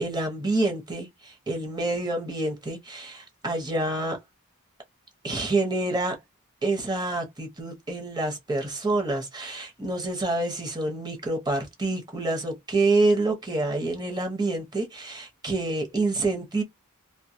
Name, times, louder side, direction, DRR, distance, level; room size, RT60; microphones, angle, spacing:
voice 1, 0.0-4.2 5.2-6.2 6.6-16.6, right 2 dB, 20° right, 0.8 m, -27 dB
2.2 x 2.2 x 2.6 m
head